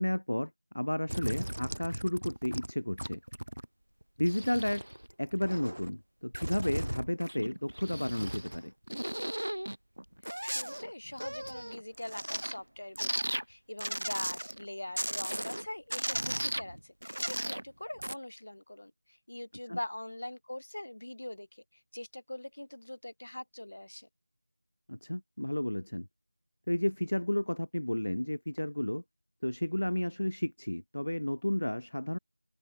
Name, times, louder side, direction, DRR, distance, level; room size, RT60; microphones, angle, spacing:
voice 1, 0.0-3.2 4.2-4.8 5.2-8.7 19.7-19.8 24.9-26.1 26.7-29.0 29.4-32.2, left 1 dB, 70° left, 0.7 m, -32 dB
sound 1, 1.1-2.7 3.0-3.6 4.0-5.9 6.3-8.6 8.9-12.6 13.0-13.4 13.8-14.6 15.0-15.6 15.9-17.6 18.0-18.1, right 1 dB, 75° right, 0.7 m, -36 dB
voice 2, 10.2-24.1, left 1 dB, 55° left, 3.8 m, -43 dB
figure-of-eight pair, 175°, 0 cm